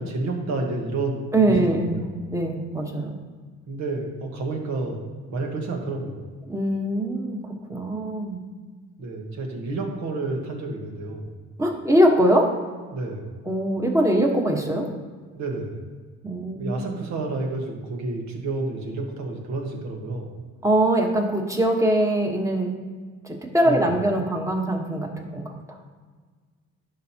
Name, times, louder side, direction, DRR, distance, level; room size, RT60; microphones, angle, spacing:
voice 1, 0.0-2.2 3.7-5.0 5.3-6.3 9.0-11.3 12.9-13.3 15.3-15.9 16.6-20.3 23.6-23.9, right 2 dB, 65° right, 1 dB, 1.5 m, -30 dB
voice 2, 1.3-3.2 6.5-8.4 11.6-12.5 13.4-14.9 16.2-16.8 20.6-22.7 23.2-25.5, right 1 dB, 10° right, 1 dB, 1.3 m, -22 dB
11.5 x 5.4 x 2.9 m, 1.5 s
cardioid pair, 90°, 30 cm